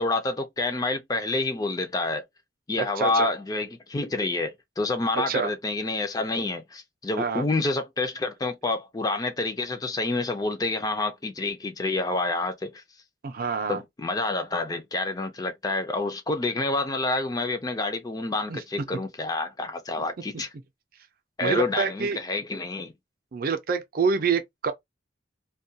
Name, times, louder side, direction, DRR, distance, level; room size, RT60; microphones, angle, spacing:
voice 1, 0.0-2.2 2.7-12.7 13.7-20.5 21.4-22.9, left 2 dB, 20° left, 0.4 m, -28 dB
voice 2, 3.0-3.3 5.1-5.5 7.2-7.4 13.2-13.8 18.5-18.6 21.4-22.2 23.3-24.7, right 5 dB, 50° right, 0.4 m, -26 dB
2.3 x 2.2 x 2.6 m
head